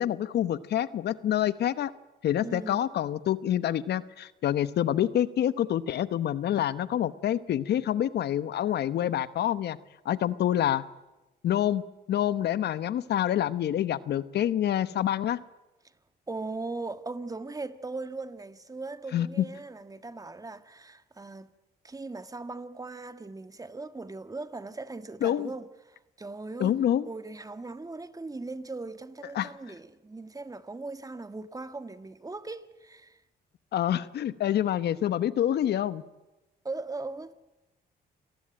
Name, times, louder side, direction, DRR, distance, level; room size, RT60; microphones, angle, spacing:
voice 1, 0.0-1.9 2.2-9.8 10.0-10.8 11.4-11.8 12.1-15.4 19.1-19.5 25.2-25.5 26.6-27.1 29.3-29.5 33.7-36.0, left 11 dB, 75° left, 1.0 m, -27 dB
voice 2, 2.4-2.9 16.3-21.5 21.8-26.8 27.1-33.2 36.6-37.3, right 3 dB, 20° right, 1.6 m, -39 dB
27.5 x 19.0 x 8.9 m
cardioid pair, 85°, 17 cm